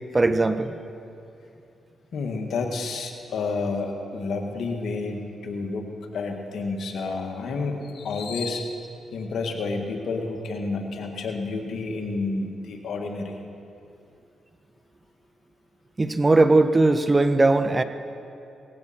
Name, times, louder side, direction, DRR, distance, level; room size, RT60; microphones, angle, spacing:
voice 1, 0.1-0.8 16.0-17.8, right 2 dB, 25° right, 10 dB, 0.8 m, -19 dB
voice 2, 2.1-8.8 9.1-13.4, left 3 dB, 70° left, 3 dB, 1.7 m, -30 dB
19.0 x 15.0 x 4.3 m, 2.6 s
supercardioid pair, 60°, 0 cm